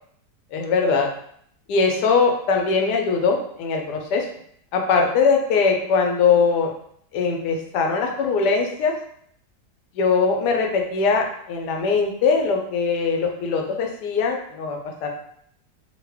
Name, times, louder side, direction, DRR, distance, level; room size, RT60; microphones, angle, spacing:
voice 1, 0.5-1.1 1.7-4.3 4.7-6.7 7.1-8.9 9.9-15.1, left 5 dB, 80° left, 2 dB, 1.2 m, -21 dB
3.1 x 2.1 x 3.3 m, 0.66 s
omnidirectional pair, 1.8 m